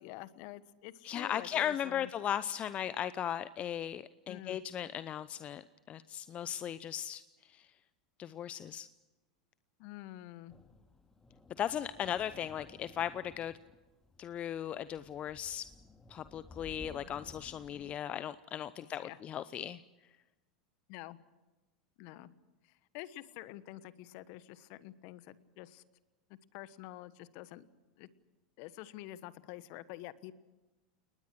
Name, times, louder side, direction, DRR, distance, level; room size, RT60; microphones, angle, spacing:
voice 1, 0.0-2.1 4.3-4.6 9.8-10.5 18.8-19.2 20.9-21.2 22.0-22.3 22.6-25.8 26.5-27.6 28.0-28.1 28.6-30.3, left 15 dB, 55° left, 16 dB, 1.3 m, -48 dB
voice 2, 1.0-7.2 7.5-7.7 8.2-8.9 11.6-13.5 14.2-15.7 16.1-19.8, left 10 dB, 35° left, 15 dB, 0.7 m, -37 dB
sound 1, 10.5-18.0, left 3 dB, 15° left, 2.1 m, -56 dB
30.0 x 19.5 x 6.4 m, 1.1 s
figure-of-eight pair, 85°, 4 cm